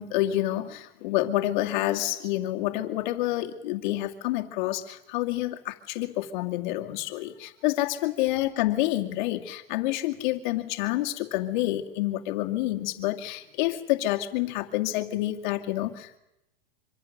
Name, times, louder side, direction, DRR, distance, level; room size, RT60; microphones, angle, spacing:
voice 1, 0.0-16.2, left 15 dB, 50° left, 4 dB, 2.4 m, -28 dB
25.5 x 25.0 x 6.6 m, 0.90 s
supercardioid pair, 160°, 31 cm